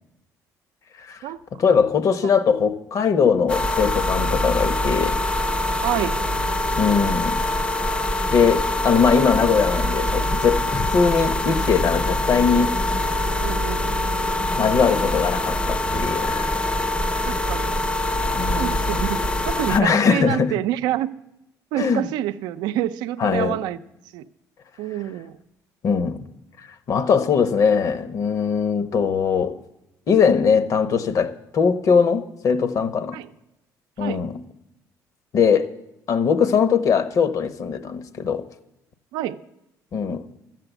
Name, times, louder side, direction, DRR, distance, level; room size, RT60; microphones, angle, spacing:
voice 1, 1.6-5.2 6.8-7.4 8.3-12.8 14.6-16.6 17.2-17.3 18.4-18.8 19.7-20.5 21.8-22.1 23.2-23.5 25.8-26.3 26.9-29.6 30.1-33.2 34.0-34.4 35.3-35.7 36.1-38.4 39.9-40.2, left 6 dB, 55° left, 0.9 m, -20 dB
sound 1, 3.5-19.8, left 1 dB, 15° left, 0.5 m, -24 dB
voice 2, 5.8-6.3 13.4-13.8 17.2-17.7 18.5-21.1 21.7-23.8 24.1-24.2 24.8-25.4 33.1-33.3 34.0-34.2 39.1-39.4, right 13 dB, 85° right, 0.5 m, -27 dB
13.0 x 7.7 x 8.0 m
cardioid pair, 100°, 7 cm